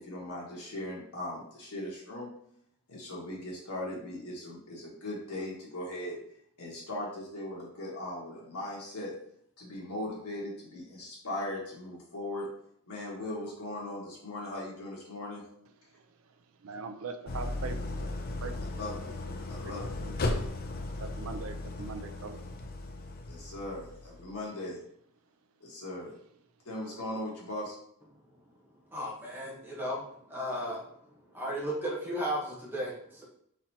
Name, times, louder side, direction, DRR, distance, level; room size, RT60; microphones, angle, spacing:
voice 1, 0.0-2.3 2.9-6.2 6.6-9.1 9.6-12.5 12.9-15.4 18.8-19.1 19.5-19.9 23.3-24.8 25.6-26.1 26.6-27.8, left 1 dB, 85° left, -4 dB, 1.6 m, -39 dB
voice 2, 16.6-18.1 18.4-18.6 19.6-19.7 20.0-20.1 21.0-22.4, right 4 dB, 65° right, 8 dB, 0.5 m, -41 dB
Idling, 17.3-24.3, left 2 dB, 45° left, 0.5 m, -36 dB
voice 3, 28.9-30.8 31.3-33.2, equal, 10° right, -5 dB, 1.2 m, -35 dB
4.4 x 4.0 x 2.9 m, 0.70 s
head